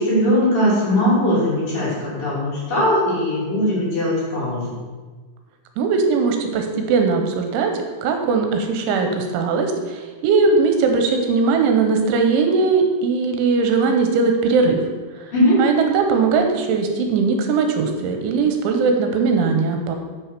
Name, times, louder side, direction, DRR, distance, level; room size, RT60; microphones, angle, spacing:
voice 1, 0.0-4.8 15.3-15.6, equal, 50° left, -7 dB, 4.5 m, -19 dB
voice 2, 5.8-7.7 8.0-14.8 15.6-20.0, right 4 dB, 80° right, 4 dB, 3.3 m, -19 dB
8.4 x 6.1 x 6.7 m, 1.4 s
omnidirectional pair, 5.5 m